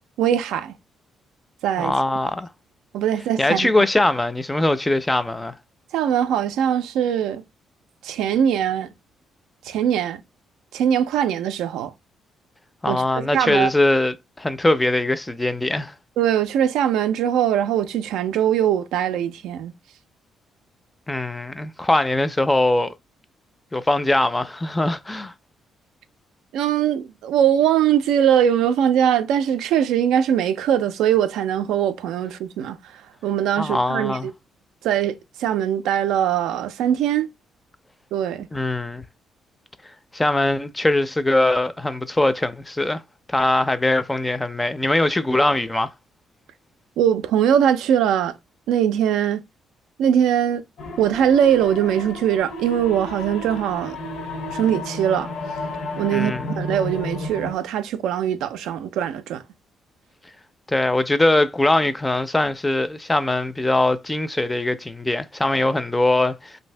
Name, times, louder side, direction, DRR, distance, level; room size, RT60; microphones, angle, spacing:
voice 1, 0.2-0.7 1.6-1.9 2.9-3.7 5.9-7.4 8.0-8.9 9.7-10.2 10.7-11.9 12.9-13.7 16.2-19.7 26.5-32.8 33.2-34.2 34.8-37.3 38.1-38.5 47.0-48.3 48.7-49.4 50.0-50.6 51.0-54.0 54.5-55.3 56.0-59.4, right 9 dB, 90° right, 0.4 m, -21 dB
voice 2, 1.8-2.5 3.4-5.6 12.8-15.9 21.1-22.9 23.7-25.3 33.6-34.3 38.5-39.1 40.1-43.0 43.3-45.9 56.1-56.5 60.7-66.6, left 2 dB, 15° left, 0.4 m, -21 dB
sound 1, 50.8-57.6, left 2 dB, 75° left, 0.7 m, -32 dB
2.7 x 2.6 x 3.2 m
cardioid pair, 90°, 0 cm